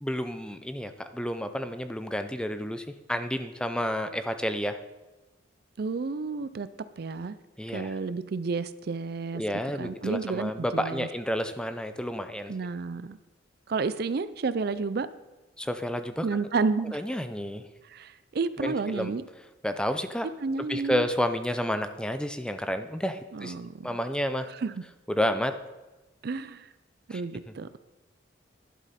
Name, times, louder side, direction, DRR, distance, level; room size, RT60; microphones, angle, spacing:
voice 1, 0.0-4.8 7.6-8.0 9.3-12.5 15.6-16.3 16.9-17.7 18.6-19.1 19.6-20.3 20.7-23.5 23.8-24.5 25.1-25.5 27.1-27.2 27.5-27.6, equal, 5° left, 0.5 m, -30 dB
voice 2, 5.8-6.7 7.0-7.4 7.7-9.4 9.8-11.1 12.5-13.2 13.7-15.1 16.2-17.0 17.8-19.2 20.4-21.1 23.3-23.9 24.6-24.7 26.2-26.7 27.1-27.7, right 4 dB, 50° right, 0.4 m, -31 dB
11.5 x 11.5 x 4.3 m
head